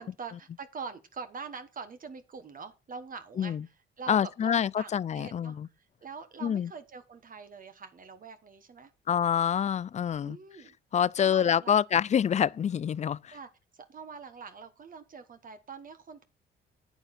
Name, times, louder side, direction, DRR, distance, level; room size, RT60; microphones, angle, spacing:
voice 1, 0.0-8.9 10.2-10.8 11.2-11.8 13.3-16.2, right 5 dB, 45° right, 1.2 m, -44 dB
voice 2, 4.1-5.7 6.4-6.7 9.1-10.4 10.9-13.3, left 8 dB, 35° left, 0.4 m, -26 dB
9.1 x 8.9 x 4.2 m
cardioid pair, 90°, 20 cm